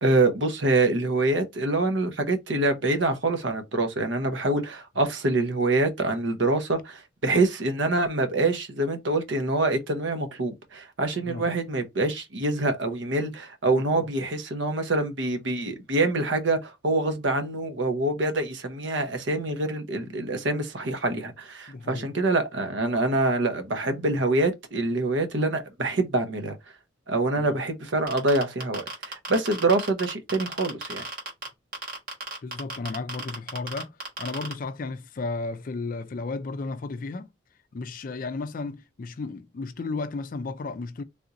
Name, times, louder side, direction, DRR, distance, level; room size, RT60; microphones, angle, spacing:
voice 1, 0.0-26.6 27.1-31.0, right 2 dB, 70° right, 0.8 m, -25 dB
voice 2, 13.7-14.1 21.7-22.1 27.4-27.6 32.4-37.3 37.7-41.0, left 3 dB, 45° left, 0.4 m, -34 dB
sound 1, 28.1-31.5 31.7-34.5, right 3 dB, 45° right, 1.3 m, -34 dB
3.4 x 2.6 x 2.8 m
head